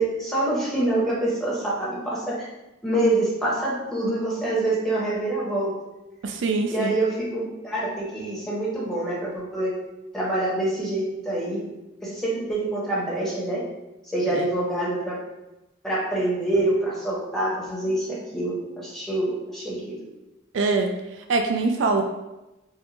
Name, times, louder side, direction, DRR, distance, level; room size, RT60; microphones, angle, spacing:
voice 1, 0.0-2.5 2.8-5.7 6.7-9.7 10.1-11.6 12.0-13.6 14.1-15.2 15.8-19.9, right 1 dB, ahead, -6 dB, 1.0 m, -26 dB
voice 2, 6.2-6.9 14.3-14.5 20.5-20.9 21.3-22.0, right 4 dB, 70° right, 5 dB, 0.4 m, -23 dB
4.8 x 2.1 x 3.2 m, 0.99 s
head